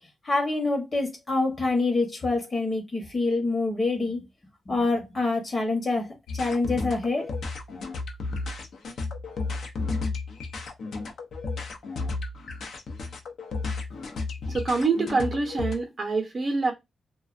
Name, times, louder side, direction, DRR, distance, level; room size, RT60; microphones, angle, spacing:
voice 1, 0.2-4.2 4.7-7.3, left 3 dB, 30° left, 0.9 m, -26 dB
sound 1, 6.3-15.7, left 3 dB, 65° left, 0.6 m, -33 dB
voice 2, 14.5-16.7, right 3 dB, 35° right, 0.7 m, -26 dB
2.4 x 2.2 x 2.4 m
wide cardioid pair, 140°, 0 cm